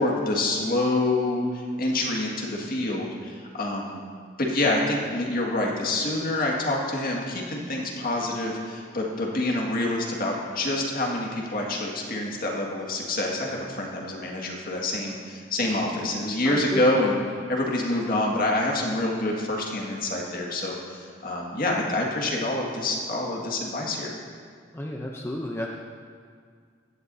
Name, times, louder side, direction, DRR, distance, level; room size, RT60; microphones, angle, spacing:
voice 1, 0.0-4.0 4.4-17.2 17.5-24.1, left 2 dB, 50° left, -1 dB, 2.0 m, -27 dB
voice 2, 16.4-16.8 24.7-25.7, left 1 dB, 15° left, -1 dB, 0.7 m, -31 dB
16.5 x 11.5 x 2.7 m, 2.1 s
head